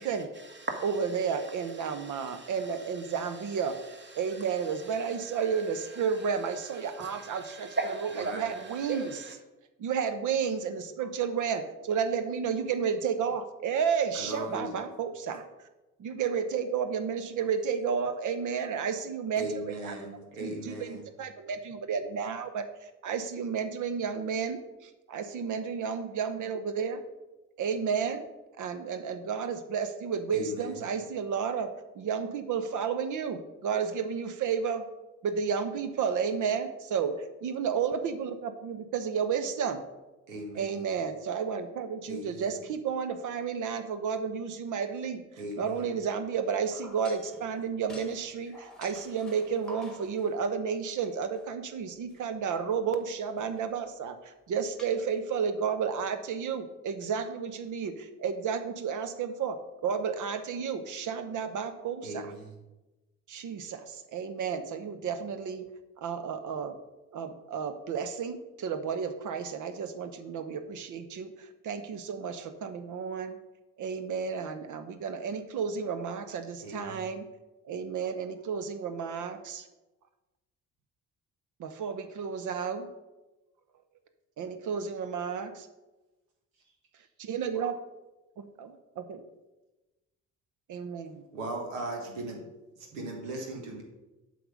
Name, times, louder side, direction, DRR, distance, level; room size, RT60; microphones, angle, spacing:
voice 1, 0.0-9.3, right 3 dB, 30° right, 3 dB, 1.8 m, -41 dB
voice 2, 0.8-3.8 4.1-7.8 8.3-9.1 9.8-15.4 16.0-19.5 19.8-19.9 20.4-22.7 23.0-27.0 27.6-28.2 28.6-34.9 35.2-39.8 40.5-45.2 45.6-62.3 63.3-65.7 66.0-66.8 67.1-73.3 73.8-77.3 77.7-79.7 81.6-82.9 84.4-85.7 87.2-87.8 88.4-89.2 90.7-91.2, right 6 dB, 50° right, 10 dB, 0.9 m, -32 dB
voice 3, 8.2-8.5 14.1-14.8 19.4-21.1 30.3-30.8 40.3-40.9 42.1-42.6 45.4-45.9 62.0-62.6 76.6-77.1 87.2-87.3 91.3-92.4 92.8-93.8, right 1 dB, 80° right, 1 dB, 1.5 m, -38 dB
sound 1, 46.5-50.4 51.0-51.5 52.1-52.2 53.2-53.8 54.1-54.2 54.8-55.3, equal, ahead, 1.5 m, -51 dB
7.7 x 5.1 x 5.3 m, 1.1 s
figure-of-eight pair, 45°, 39 cm